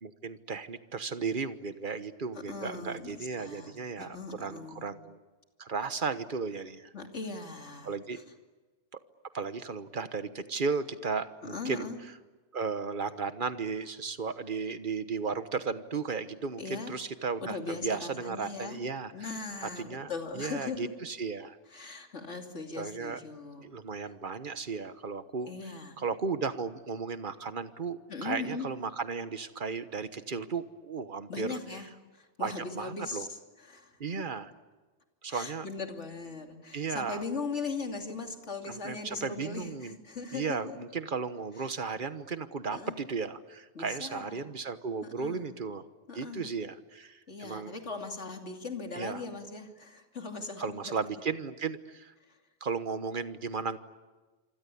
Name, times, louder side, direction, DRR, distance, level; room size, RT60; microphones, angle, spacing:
voice 1, 0.0-5.2 5.6-6.9 7.8-8.2 8.9-9.0 9.3-11.9 12.5-19.3 19.8-20.1 20.3-22.0 22.7-23.2 23.6-25.5 26.0-31.6 32.4-33.3 34.0-34.5 35.2-35.7 36.7-37.2 38.7-40.0 40.3-45.9 46.1-47.7 48.9-49.2 50.6-52.1 52.6-53.8, right 5 dB, 45° right, 11 dB, 1.3 m, -35 dB
voice 2, 2.3-4.8 6.9-7.9 11.4-12.0 16.6-16.9 17.4-18.8 19.1-20.9 21.7-23.7 25.5-26.0 28.1-28.8 31.3-34.2 35.3-40.8 41.6-41.7 42.7-43.0 43.7-44.5 45.0-45.6 46.1-46.5 47.3-50.9 52.2-52.4, left 4 dB, 70° left, 4 dB, 3.0 m, -39 dB
26.5 x 25.5 x 8.5 m, 1.3 s
omnidirectional pair, 1.2 m